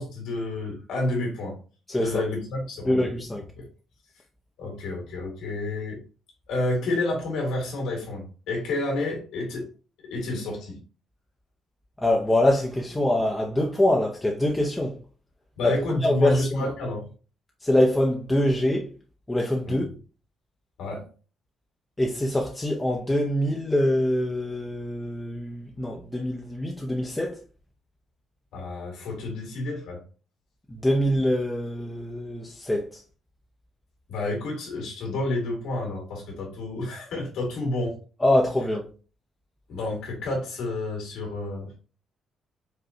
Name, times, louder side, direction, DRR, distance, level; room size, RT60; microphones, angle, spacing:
voice 1, 0.0-1.6 2.0-3.1 3.5-3.7 4.6-6.0 6.5-9.7 10.1-10.8 15.6-17.0 19.7-19.8 20.8-21.0 28.5-30.0 34.1-38.0 39.7-41.7, left 2 dB, 85° left, 1.8 m, -30 dB
voice 2, 1.9-2.2 2.9-3.4 12.0-15.0 15.6-16.7 17.6-18.9 19.3-19.9 22.0-27.4 30.7-32.8 38.2-38.8, left 1 dB, 15° left, 0.5 m, -24 dB
4.7 x 2.2 x 2.7 m
cardioid pair, 90°, 0 cm